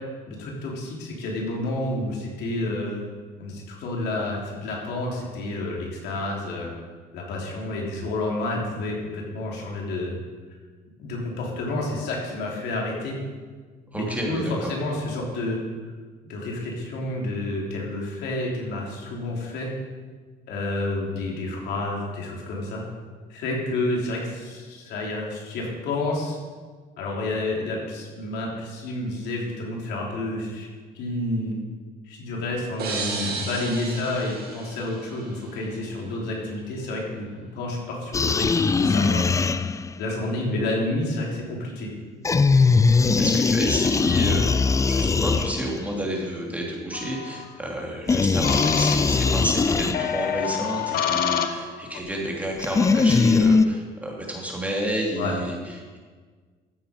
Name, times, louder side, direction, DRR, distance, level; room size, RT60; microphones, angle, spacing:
voice 1, 0.3-3.0 3.4-6.7 7.1-10.1 11.0-13.2 13.9-15.6 16.3-19.7 20.5-22.8 23.3-26.4 27.0-30.7 30.9-31.6 32.1-37.3 37.5-39.7 40.0-41.9 42.9-43.3 55.2-55.3, left 2 dB, 80° left, -2 dB, 3.5 m, -29 dB
voice 2, 13.9-14.7 43.2-56.0, right 1 dB, 10° right, -2 dB, 3.0 m, -30 dB
sound 1, 32.8-35.6, right 4 dB, 70° right, 2.4 m, -33 dB
sound 2, 38.1-40.0 42.2-46.0 48.1-50.3 52.6-53.7, left 4 dB, 20° left, 0.4 m, -20 dB
sound 3, 46.9-47.4 48.4-49.4 49.9-52.0, left 8 dB, 65° left, 1.0 m, -28 dB
14.0 x 7.8 x 5.2 m, 1.5 s
cardioid pair, 110°, 17 cm